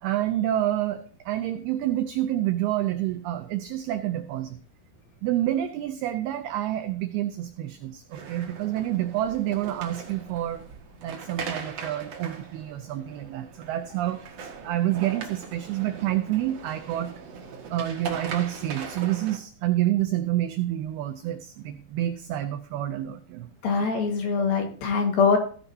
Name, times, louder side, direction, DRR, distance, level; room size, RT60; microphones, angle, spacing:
voice 1, 0.0-4.6 5.2-10.7 11.0-17.1 17.7-23.5 24.4-24.5, right 13 dB, 90° right, 8 dB, 2.2 m, -28 dB
sound 1, 8.1-19.4, right 5 dB, 60° right, 1.8 m, -40 dB
voice 2, 23.6-25.4, left 5 dB, 60° left, 3 dB, 2.8 m, -23 dB
16.0 x 9.9 x 2.7 m, 0.43 s
omnidirectional pair, 5.4 m